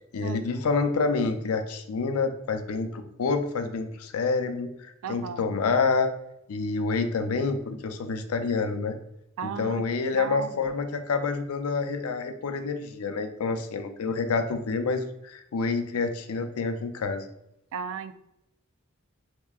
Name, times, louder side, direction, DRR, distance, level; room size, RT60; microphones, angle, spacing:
voice 1, 0.1-6.1 6.5-9.0 9.4-17.2, left 4 dB, 85° left, 8 dB, 0.4 m, -28 dB
voice 2, 5.0-5.4 9.4-9.8 10.1-10.5 17.7-18.2, right 7 dB, 70° right, 12 dB, 0.3 m, -34 dB
3.1 x 2.8 x 3.4 m, 0.81 s
head